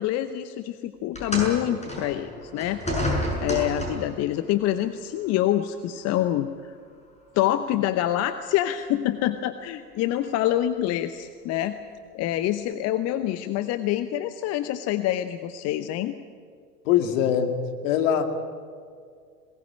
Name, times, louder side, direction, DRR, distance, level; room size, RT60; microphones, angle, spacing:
voice 1, 0.0-2.8 3.4-6.8 7.3-11.8 12.1-16.1, left 12 dB, 30° left, 11 dB, 0.9 m, -26 dB
sound 1, 1.1-4.2 5.2-5.4 6.2-6.3, left 1 dB, 15° left, 7.0 m, -29 dB
voice 2, 16.9-18.2, left 9 dB, 50° left, 6 dB, 2.4 m, -22 dB
22.0 x 19.0 x 8.9 m, 2.1 s
figure-of-eight pair, 85°, 48 cm